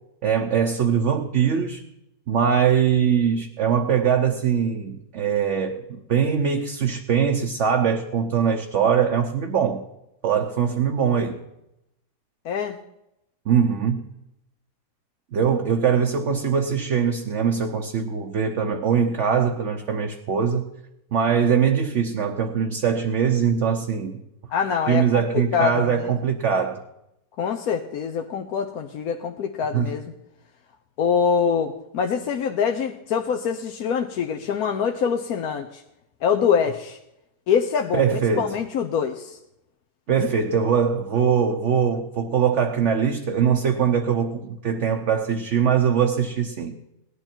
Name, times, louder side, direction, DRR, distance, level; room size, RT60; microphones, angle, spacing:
voice 1, 0.2-1.8 2.3-9.8 10.2-11.4 13.5-14.1 15.3-20.7 21.1-24.2 24.9-26.8 29.7-29.9 37.9-38.6 40.1-46.8, right 7 dB, 55° right, 1.0 m, -22 dB
voice 2, 12.4-12.8 24.5-25.2 25.5-25.9 27.4-30.0 31.0-35.8 36.2-37.0 37.5-38.0 38.4-39.4, left 7 dB, 70° left, 1.2 m, -24 dB
18.0 x 11.5 x 4.4 m
omnidirectional pair, 1.7 m